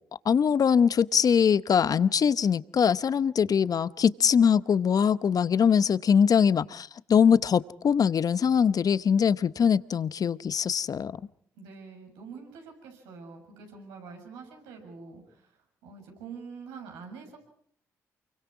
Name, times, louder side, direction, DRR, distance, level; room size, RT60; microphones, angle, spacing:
voice 1, 0.2-11.1, left 7 dB, 55° left, 16 dB, 0.9 m, -22 dB
voice 2, 11.5-17.4, right 5 dB, 85° right, 2 dB, 6.9 m, -45 dB
29.0 x 23.5 x 4.8 m, 0.64 s
hypercardioid pair, 45°, 8 cm